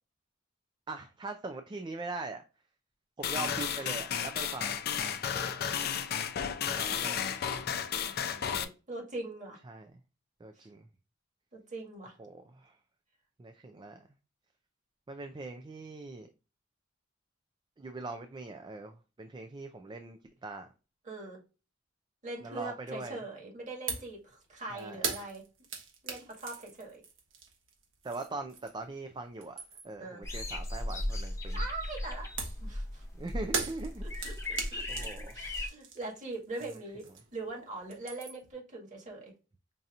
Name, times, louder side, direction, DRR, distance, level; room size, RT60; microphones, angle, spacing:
voice 1, 0.9-2.4 3.2-4.8 6.7-7.2 9.7-9.9 10.4-10.9 12.2-12.8 13.4-14.1 15.1-16.3 17.8-20.7 22.4-23.2 24.7-25.0 28.0-29.5 29.8-31.6 33.2-34.4 34.9-35.3, right 3 dB, 25° right, 0.3 m, -41 dB
sound 1, 3.2-8.6, left 8 dB, 50° left, 0.5 m, -33 dB
voice 2, 5.3-5.7 8.0-9.6 10.5-10.7 11.5-12.2 21.0-21.4 22.2-25.4 26.0-27.0 30.0-30.2 31.5-32.3 32.6-33.0 34.0-35.0 35.3-39.3, right 2 dB, 40° right, 1.7 m, -42 dB
sound 2, 23.9-24.2 24.4-28.9 29.3-30.0 32.4-37.5 37.7-38.5, right 5 dB, 80° right, 1.2 m, -40 dB
sound 3, 30.2-35.7, left 1 dB, 15° left, 0.7 m, -37 dB
5.3 x 2.8 x 2.4 m
head